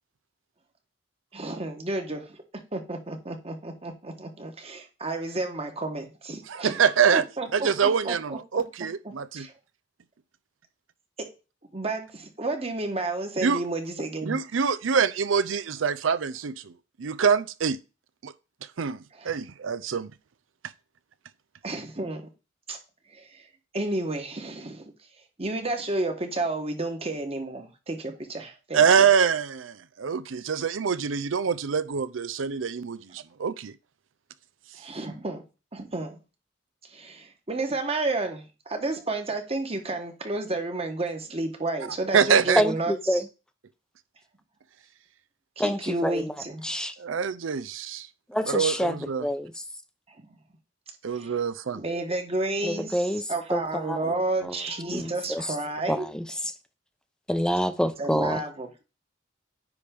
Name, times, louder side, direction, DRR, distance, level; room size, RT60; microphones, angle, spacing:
voice 1, 1.3-2.3 2.7-6.8 7.1-8.6 9.0-9.5 11.7-14.4 19.2-19.3 21.6-22.3 22.7-22.8 23.1-23.4 23.7-24.9 25.4-29.1 34.8-35.4 35.7-36.2 36.9-43.2 45.6-46.6 51.1-51.3 51.7-56.1 58.0-58.8, right 2 dB, 30° right, 1.3 m, -31 dB
voice 2, 6.5-7.2 7.5-9.5 13.4-13.6 14.2-16.7 17.0-17.8 18.2-18.3 18.8-19.0 19.2-20.1 28.7-33.7 42.1-42.6 47.0-48.1 48.5-49.3 51.0-51.8 54.0-54.1, right 6 dB, 90° right, 0.5 m, -25 dB
voice 3, 42.6-43.2 45.6-46.3 46.6-46.9 48.3-49.5 52.6-53.2 53.5-53.6 53.9-54.0 54.4-54.5 54.9-55.5 55.9-56.3 57.3-58.4, equal, 5° left, 0.6 m, -27 dB
9.6 x 3.5 x 5.1 m
head